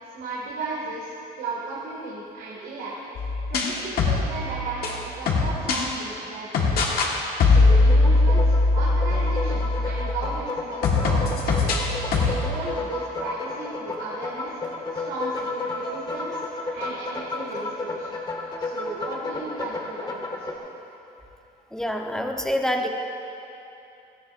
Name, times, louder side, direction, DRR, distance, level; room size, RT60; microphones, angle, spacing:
voice 1, 0.1-3.1 3.5-6.8 7.4-11.8 12.1-14.5 14.8-18.1 18.6-20.6, right 3 dB, 85° right, -6 dB, 2.1 m, -35 dB
sound 1, 3.2-5.8 6.5-7.1 7.4-10.4 10.8-12.4, left 3 dB, 65° left, 1.6 m, -21 dB
sound 2, 7.7-20.5, left 3 dB, 25° left, 1.3 m, -33 dB
voice 2, 21.7-22.9, equal, 5° left, 2 dB, 1.0 m, -26 dB
17.5 x 13.5 x 2.6 m, 2.8 s
cardioid pair, 110°, 17 cm